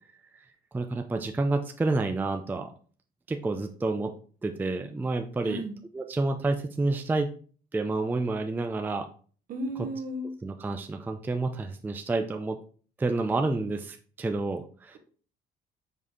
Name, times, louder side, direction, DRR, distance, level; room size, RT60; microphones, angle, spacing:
voice 1, 0.7-2.7 3.3-4.1 4.4-5.6 5.9-7.3 7.7-9.1 10.4-12.6 13.0-15.0, right 3 dB, 10° right, 5 dB, 0.4 m, -29 dB
voice 2, 5.4-5.8 9.5-10.3, right 1 dB, 55° right, 5 dB, 1.0 m, -34 dB
5.2 x 2.7 x 3.6 m, 0.42 s
cardioid pair, 110°, 17 cm